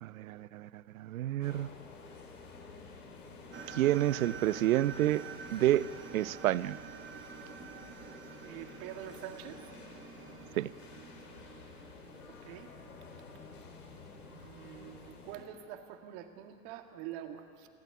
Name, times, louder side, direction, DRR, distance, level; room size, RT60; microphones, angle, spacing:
voice 1, 0.0-1.7 3.7-5.2 5.5-5.9 6.1-6.8 10.6-10.7, right 14 dB, 65° right, 20 dB, 0.6 m, -29 dB
sound 1, 1.4-15.4, left 4 dB, 70° left, 3.7 m, -51 dB
sound 2, 3.5-13.0, right 7 dB, 25° right, 1.6 m, -49 dB
voice 2, 8.4-9.6 12.3-12.7 14.2-17.7, right 11 dB, 45° right, 6 dB, 2.1 m, -46 dB
27.5 x 12.5 x 9.7 m, 2.2 s
figure-of-eight pair, 95°, 46 cm